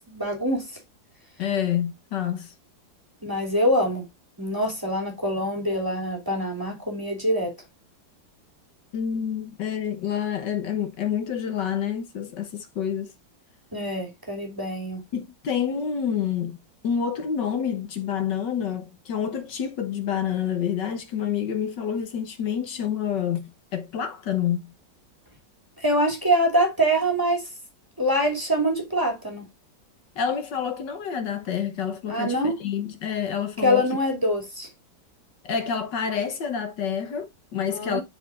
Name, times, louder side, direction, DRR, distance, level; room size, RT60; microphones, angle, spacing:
voice 1, 0.1-0.8 3.2-4.0 4.4-7.5 13.7-15.0 25.8-27.5 28.0-29.5 32.1-32.6 33.6-34.7 37.7-38.0, equal, 10° right, 2.7 m, -24 dB
voice 2, 1.4-2.5 8.9-13.1 15.1-16.6 16.8-24.7 30.2-33.9 35.4-38.0, left 8 dB, 70° left, 1.7 m, -28 dB
10.5 x 4.9 x 2.5 m
omnidirectional pair, 2.0 m